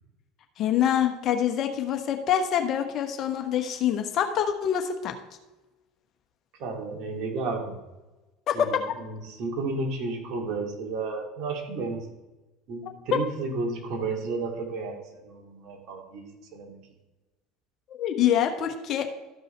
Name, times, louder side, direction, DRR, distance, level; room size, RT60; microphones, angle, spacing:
voice 1, 0.6-5.1 8.5-8.8 13.1-13.2 17.9-19.1, left 9 dB, 50° left, 5 dB, 1.2 m, -25 dB
voice 2, 6.6-7.8 8.5-12.1 12.7-16.8, right 3 dB, 55° right, 1 dB, 2.2 m, -32 dB
13.5 x 5.4 x 4.4 m, 1.1 s
hypercardioid pair, 70°, 0 cm